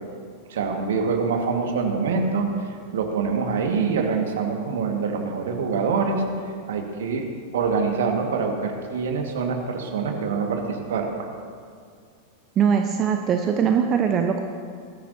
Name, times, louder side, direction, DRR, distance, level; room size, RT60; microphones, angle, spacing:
voice 1, 0.5-7.2 7.5-11.3, right 5 dB, 60° right, 3 dB, 1.7 m, -25 dB
voice 2, 12.6-14.4, right 7 dB, 30° right, 5 dB, 0.8 m, -21 dB
19.5 x 13.5 x 2.8 m, 2.2 s
figure-of-eight pair, 90°, 0 cm